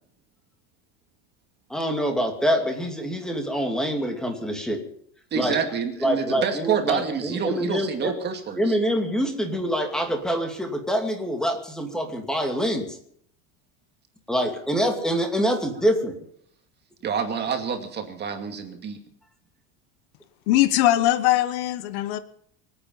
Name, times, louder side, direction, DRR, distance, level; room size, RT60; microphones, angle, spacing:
voice 1, 1.7-4.9 5.3-5.6 6.0-8.2 8.6-13.0 14.3-16.2, equal, ahead, 3 dB, 2.5 m, -25 dB
voice 2, 5.3-8.8 17.0-19.0, right 7 dB, 30° right, 5 dB, 2.4 m, -28 dB
voice 3, 20.5-22.2, left 14 dB, 75° left, 13 dB, 1.3 m, -21 dB
25.0 x 8.9 x 5.7 m, 0.65 s
cardioid pair, 150°, 35 cm